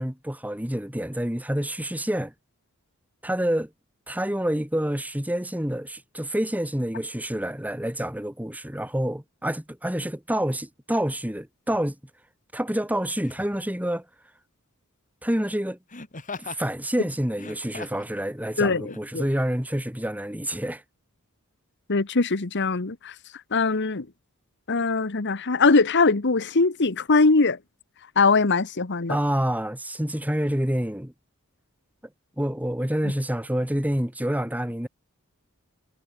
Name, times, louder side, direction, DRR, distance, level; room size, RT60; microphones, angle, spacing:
voice 1, 0.0-2.3 3.2-3.7 4.1-12.0 12.5-14.0 15.2-15.8 16.4-20.8 29.1-31.1 32.4-34.9, equal, 5° right, 2.5 m, -27 dB
Laughter, 11.7-11.9 13.2-13.6 15.9-16.7 17.3-18.1 18.9-19.0, left 4 dB, 35° left, 3.3 m, -39 dB
voice 2, 18.6-19.3 21.9-23.1 23.5-24.1 24.7-27.6 28.1-29.2, left 3 dB, 55° left, 1.2 m, -21 dB
head